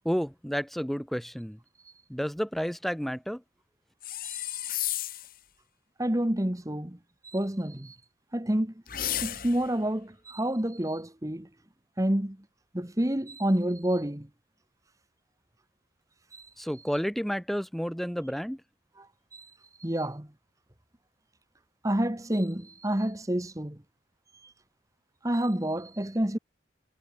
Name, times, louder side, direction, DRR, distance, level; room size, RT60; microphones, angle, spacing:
voice 1, 0.0-1.6 2.1-3.4 16.6-18.6, equal, ahead, 0.6 m, -31 dB
sound 1, 4.0-5.4 8.9-9.7, left 12 dB, 50° left, 2.3 m, -33 dB
voice 2, 6.0-7.0 7.2-7.9 8.3-8.7 9.2-11.5 12.0-12.4 12.7-14.3 16.3-16.5 19.0-19.1 19.3-19.5 19.8-20.3 21.8-23.8 25.2-26.4, right 1 dB, 15° right, 1.3 m, -28 dB
head